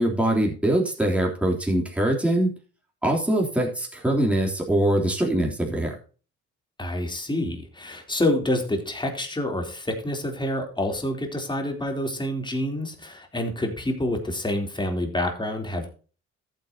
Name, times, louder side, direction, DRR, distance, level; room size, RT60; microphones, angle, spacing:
voice 1, 0.0-2.5 3.0-5.9, right 1 dB, 5° right, -2 dB, 3.4 m, -23 dB
voice 2, 6.8-15.9, left 1 dB, 15° left, 2 dB, 3.5 m, -27 dB
14.0 x 8.7 x 2.9 m, 0.37 s
cardioid pair, 90°, 30 cm